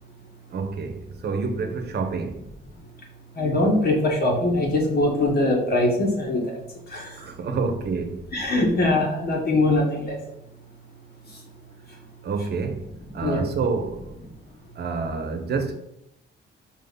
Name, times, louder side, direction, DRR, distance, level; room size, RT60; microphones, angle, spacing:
voice 1, 0.5-2.4 7.2-8.3 12.2-12.9 13.1-14.2 14.7-15.7, right 4 dB, 55° right, 1.1 m, -28 dB
voice 2, 3.4-6.4 6.9-7.1 8.3-10.2 13.2-13.4, left 2 dB, 50° left, 2.1 m, -22 dB
5.1 x 3.9 x 5.4 m
cardioid pair, 90°, 20 cm